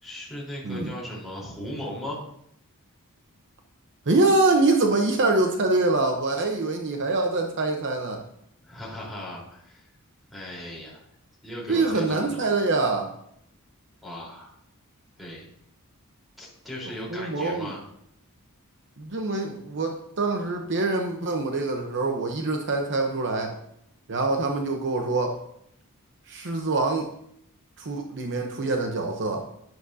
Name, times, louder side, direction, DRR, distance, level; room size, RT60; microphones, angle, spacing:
voice 1, 0.0-2.2 8.7-9.9 10.3-11.0 11.4-12.4 14.0-14.5 15.2-15.5 16.4-17.8 24.3-24.6, left 1 dB, ahead, -5 dB, 3.9 m, -37 dB
voice 2, 4.1-8.2 11.7-13.1 17.1-17.7 19.0-23.6 24.1-25.4 26.3-27.1 27.8-29.5, right 2 dB, 55° right, 3 dB, 0.9 m, -24 dB
11.0 x 11.0 x 2.8 m, 0.73 s
head